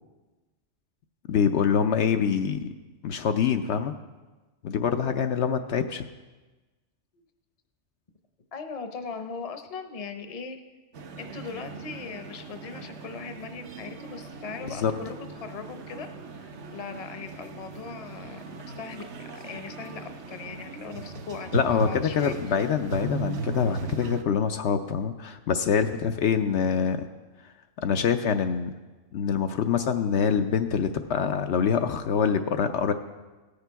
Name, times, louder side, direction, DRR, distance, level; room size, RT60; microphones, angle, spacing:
voice 1, 1.3-2.7 3.0-3.9 4.6-6.0 14.8-14.9 21.5-27.1 27.8-28.7 29.1-32.9, left 7 dB, 70° left, 7 dB, 0.8 m, -25 dB
voice 2, 8.5-10.6 11.2-15.1 15.4-16.1 16.3-19.0 19.3-22.3, left 5 dB, 35° left, 7 dB, 0.7 m, -39 dB
sound 1, 10.9-24.2, right 3 dB, 70° right, 1.1 m, -37 dB
17.0 x 6.7 x 4.6 m, 1.2 s
omnidirectional pair, 1.2 m